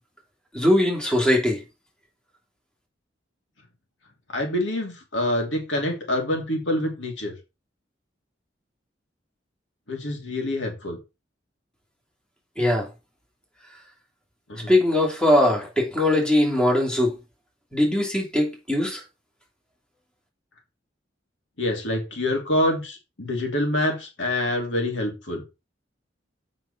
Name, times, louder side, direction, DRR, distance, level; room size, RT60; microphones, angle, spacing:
voice 1, 0.5-1.6 12.6-12.9 14.7-17.1 17.7-19.0, left 1 dB, 5° left, 2.7 m, -21 dB
voice 2, 4.3-7.3 9.9-11.0 14.5-14.7 21.6-25.4, left 1 dB, 80° left, 2.9 m, -26 dB
7.4 x 5.9 x 5.0 m
head